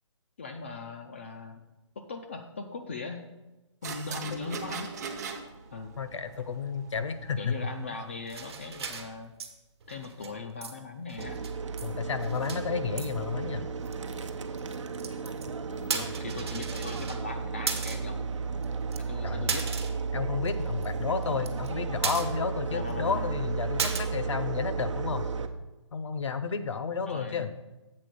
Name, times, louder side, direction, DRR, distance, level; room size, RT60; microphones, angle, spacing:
voice 1, 0.4-1.6 2.0-3.2 3.8-4.9 5.7-6.0 7.4-9.3 9.9-11.4 15.7-18.3 19.1-19.7 22.7-23.4 27.1-27.5, left 4 dB, 25° left, 4 dB, 0.3 m, -39 dB
sound 1, 3.8-8.8, right 5 dB, 35° right, 0.8 m, -42 dB
voice 2, 6.0-7.6 11.8-13.7 19.2-19.5 20.1-25.3 25.9-27.5, left 5 dB, 70° left, 11 dB, 0.8 m, -31 dB
sound 2, 8.3-9.5 9.8-10.4 10.6-10.8 11.0-11.9 12.1-12.6 13.0-13.1 13.9-14.0 14.6-15.5 15.8-17.2 17.7-18.1 18.6-18.7 18.9-19.0 19.5-20.1 20.5-20.6 20.8-20.9 21.2-21.7 22.0-22.6 22.9-23.0 23.8-24.0, right 6 dB, 55° right, 1.1 m, -35 dB
sound 3, 11.2-25.5, right 5 dB, 75° right, 0.8 m, -34 dB
7.6 x 4.5 x 6.5 m, 1.1 s
hypercardioid pair, 165°, 16 cm